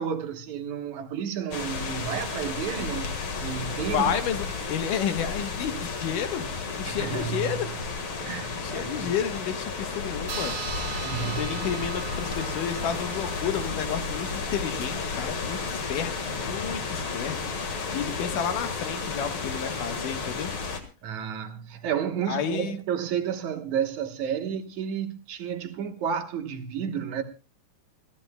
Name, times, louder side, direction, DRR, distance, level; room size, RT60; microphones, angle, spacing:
voice 1, 0.0-4.2 6.8-7.7 8.2-9.1 11.0-11.6 21.0-27.2, right 8 dB, 65° right, 2.5 m, -31 dB
sound 1, 1.5-20.8, left 4 dB, 45° left, 2.1 m, -32 dB
voice 2, 3.9-7.8 8.6-10.6 11.3-20.5 22.3-22.8, left 8 dB, 80° left, 2.8 m, -31 dB
sound 2, 10.3-15.2, right 6 dB, 50° right, 2.2 m, -39 dB
28.5 x 13.5 x 2.2 m
omnidirectional pair, 3.7 m